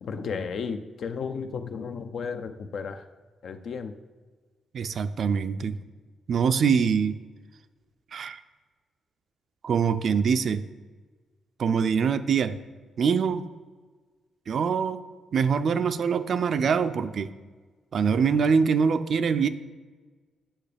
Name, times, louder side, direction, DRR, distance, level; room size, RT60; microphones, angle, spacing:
voice 1, 0.0-3.0 3.4-3.9, left 5 dB, 60° left, 8 dB, 0.6 m, -33 dB
voice 2, 4.7-5.7 6.3-7.2 8.1-8.4 9.6-10.6 11.6-12.6 13.0-13.5 14.5-15.0 15.3-17.3 17.9-19.5, right 6 dB, 55° right, 11 dB, 0.4 m, -24 dB
8.8 x 5.7 x 5.1 m, 1.4 s
cardioid pair, 115°, 0 cm